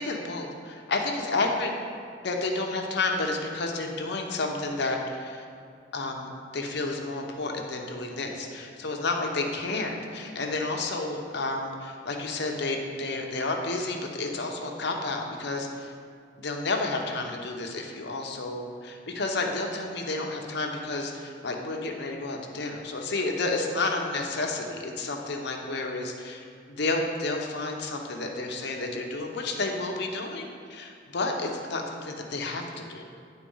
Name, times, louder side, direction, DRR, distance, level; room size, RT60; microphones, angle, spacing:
voice 1, 0.0-1.7 2.2-5.4 5.9-15.9 16.4-33.1, left 2 dB, 65° left, 2 dB, 0.9 m, -31 dB
10.0 x 4.0 x 5.5 m, 2.3 s
head